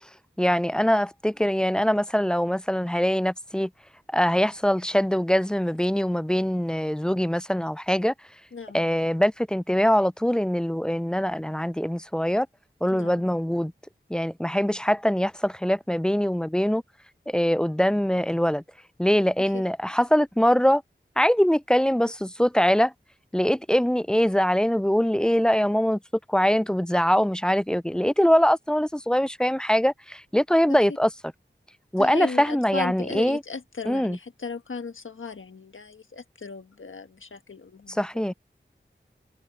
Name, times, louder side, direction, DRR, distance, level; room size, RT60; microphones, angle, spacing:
voice 1, 0.4-3.7 4.1-8.1 8.7-12.5 12.8-13.7 14.1-16.8 17.3-18.6 19.0-20.8 21.2-22.9 23.3-26.0 26.3-31.1 31.9-33.4 33.9-34.2 38.0-38.3, equal, 5° left, 0.3 m, -23 dB
voice 2, 8.5-8.8 12.9-13.2 19.5-19.6 32.0-38.3, left 4 dB, 80° left, 1.5 m, -36 dB
wide cardioid pair, 40°, 20 cm